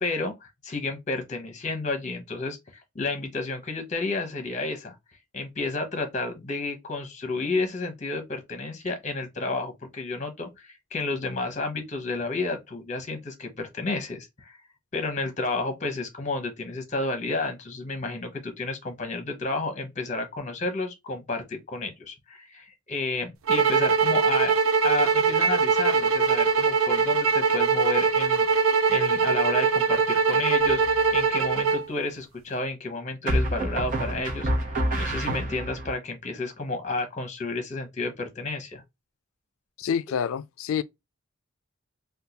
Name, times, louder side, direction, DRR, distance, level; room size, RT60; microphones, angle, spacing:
voice 1, 0.0-4.9 5.3-14.5 14.9-24.5 24.8-38.8, left 3 dB, 35° left, 0.9 m, -31 dB
sound 1, 23.5-31.8, right 5 dB, 80° right, 0.4 m, -22 dB
sound 2, 30.6-31.2 33.3-35.9, right 1 dB, 40° right, 1.0 m, -28 dB
voice 2, 39.8-40.8, left 7 dB, 80° left, 0.3 m, -27 dB
3.6 x 2.3 x 2.7 m
head